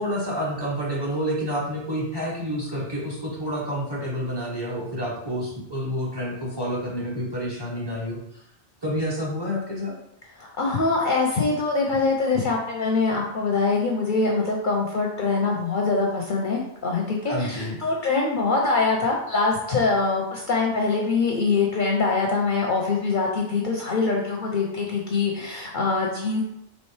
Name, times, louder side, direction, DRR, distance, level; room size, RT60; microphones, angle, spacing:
voice 1, 0.0-8.2 8.8-9.9 17.3-17.8, equal, 25° right, -4 dB, 0.8 m, -29 dB
voice 2, 10.4-26.4, left 4 dB, 55° left, -1 dB, 0.6 m, -24 dB
4.3 x 2.9 x 3.2 m, 0.78 s
omnidirectional pair, 1.2 m